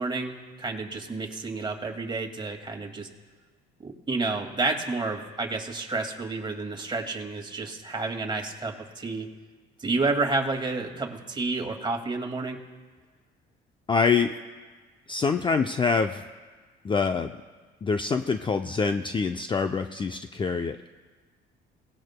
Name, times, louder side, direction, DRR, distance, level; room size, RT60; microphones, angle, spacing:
voice 1, 0.0-3.1 3.8-9.3 9.8-12.6, right 3 dB, 20° right, 3 dB, 2.1 m, -30 dB
voice 2, 13.9-14.3 15.1-16.2 16.8-17.3 17.8-20.9, left 5 dB, 25° left, 7 dB, 0.5 m, -25 dB
27.5 x 18.0 x 2.2 m, 1.4 s
cardioid pair, 105°, 21 cm